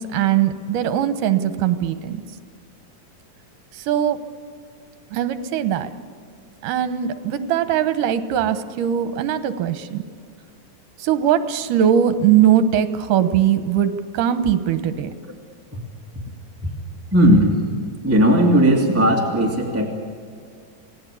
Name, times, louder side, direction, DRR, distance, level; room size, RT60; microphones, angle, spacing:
voice 1, 0.0-2.2 3.7-4.2 5.1-5.9 6.6-10.0 11.0-15.1, right 9 dB, 75° right, 11 dB, 2.6 m, -20 dB
voice 2, 17.1-17.6 18.0-19.9, equal, 5° right, -1 dB, 1.7 m, -16 dB
28.5 x 18.0 x 8.4 m, 2.2 s
omnidirectional pair, 3.9 m